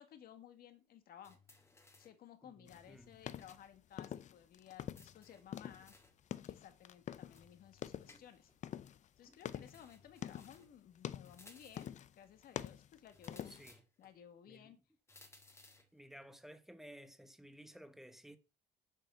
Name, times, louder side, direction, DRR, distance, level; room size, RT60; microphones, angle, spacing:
voice 1, 0.0-1.4 2.0-5.9 6.4-8.5 9.2-11.9 12.2-13.6 14.0-14.8, left 9 dB, 60° left, 1.7 m, -57 dB
sound 1, 1.2-2.2 2.7-3.7 3.9-4.0 4.9-6.2 7.3-8.6 9.7-10.8 11.2-12.0 13.1-14.1 15.1-16.0, left 3 dB, 15° left, 1.7 m, -63 dB
voice 2, 2.4-3.2 9.3-9.4 13.4-13.8 14.5-14.8 15.9-18.4, equal, ahead, 1.1 m, -56 dB
sound 2, 2.7-5.2 5.5-7.5 7.7-8.2 8.6-10.6 11.0-11.4 11.8-12.2 12.4-13.7, left 10 dB, 45° left, 0.6 m, -46 dB
7.4 x 6.5 x 5.7 m
cardioid pair, 110°, 17 cm